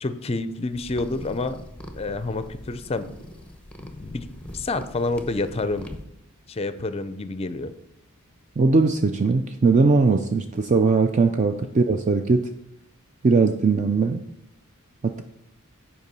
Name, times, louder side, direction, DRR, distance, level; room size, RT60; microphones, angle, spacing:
voice 1, 0.0-1.6 1.9-3.1 3.8-4.3 4.5-5.9 6.5-7.7, left 3 dB, 25° left, 12 dB, 0.5 m, -28 dB
sound 1, 0.7-6.0, left 1 dB, 5° left, 0.8 m, -41 dB
voice 2, 8.6-12.5 13.2-14.2 15.0-15.2, right 4 dB, 35° right, 7 dB, 0.4 m, -20 dB
8.3 x 4.9 x 5.3 m, 0.80 s
head